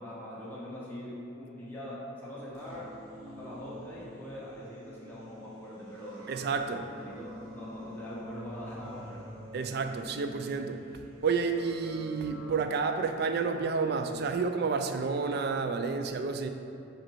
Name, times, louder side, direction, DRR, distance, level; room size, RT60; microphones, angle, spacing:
voice 1, 0.0-2.9 3.2-6.3 6.7-9.3, left 1 dB, 10° left, -8 dB, 1.2 m, -43 dB
sound 1, 2.5-12.5, equal, 80° right, 1.0 m, -47 dB
voice 2, 6.3-6.9 9.5-10.8 11.2-16.5, right 4 dB, 50° right, 7 dB, 0.3 m, -30 dB
5.0 x 4.4 x 4.5 m, 2.6 s
head